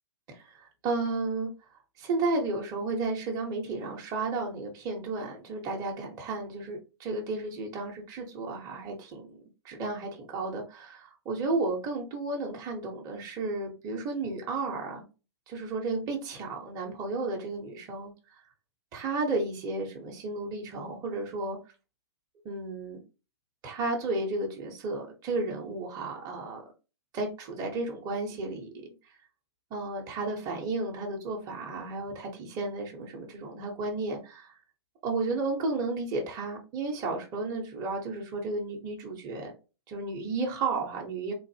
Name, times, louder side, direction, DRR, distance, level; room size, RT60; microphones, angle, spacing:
voice 1, 0.3-1.5 2.0-9.4 9.6-15.1 15.5-18.1 18.9-21.6 22.4-23.0 23.6-26.6 27.1-28.7 29.7-34.6 35.0-39.5 39.9-41.3, right 3 dB, 25° right, 1.0 m, -33 dB
3.8 x 2.6 x 2.8 m
hypercardioid pair, 125°, 14 cm